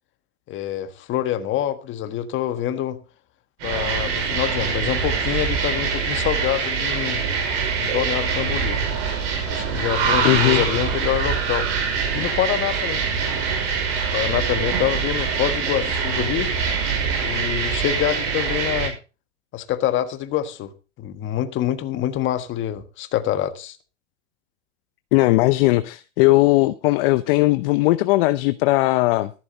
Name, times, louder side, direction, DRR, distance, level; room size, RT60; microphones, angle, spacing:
voice 1, 0.5-3.0 3.6-7.2 7.8-8.8 9.5-13.0 14.1-16.5 17.2-19.0 19.5-20.7 21.0-23.8, left 11 dB, 30° left, 1.5 m, -26 dB
sound 1, 3.6-18.9, right 5 dB, 55° right, 5.7 m, -24 dB
voice 2, 10.2-10.6 25.1-29.3, left 20 dB, 50° left, 0.7 m, -18 dB
14.0 x 11.0 x 3.9 m
supercardioid pair, 135°, 37 cm